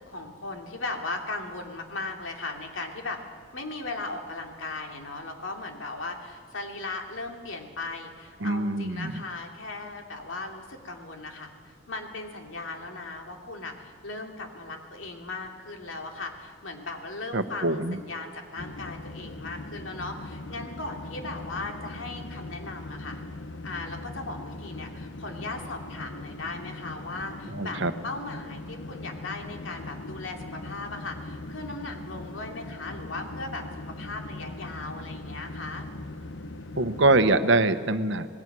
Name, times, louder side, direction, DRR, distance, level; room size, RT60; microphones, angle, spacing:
voice 1, 0.1-3.2 3.5-23.2 23.6-35.9, left 3 dB, 90° left, 2 dB, 2.9 m, -37 dB
voice 2, 8.4-9.1 17.3-18.0 27.5-27.9 36.8-38.3, right 2 dB, 65° right, 10 dB, 1.1 m, -24 dB
sound 1, 18.6-37.4, left 2 dB, 65° left, 1.1 m, -40 dB
26.5 x 19.5 x 6.2 m, 2.1 s
head